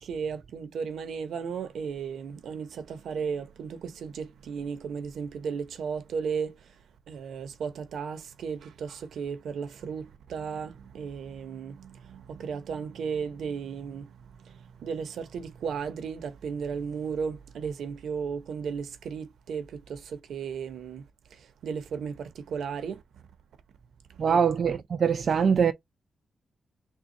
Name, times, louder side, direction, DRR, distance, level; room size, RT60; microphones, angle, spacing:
voice 1, 0.0-6.7 7.1-23.0 24.3-24.4, right 6 dB, 85° right, 0.8 m, -35 dB
voice 2, 24.2-25.7, right 6 dB, 55° right, 0.4 m, -23 dB
3.6 x 2.3 x 4.0 m
cardioid pair, 105°, 0 cm